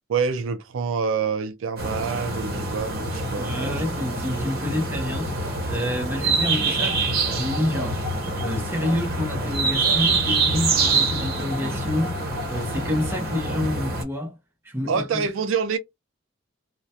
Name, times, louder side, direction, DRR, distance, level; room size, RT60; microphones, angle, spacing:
voice 1, 0.1-3.8 14.9-15.8, right 5 dB, 70° right, 0.4 m, -26 dB
sound 1, 1.8-14.0, right 3 dB, 45° right, 0.9 m, -25 dB
voice 2, 3.4-8.1 8.4-14.4 14.6-15.3, left 1 dB, 10° right, 0.6 m, -28 dB
2.3 x 2.1 x 2.7 m
head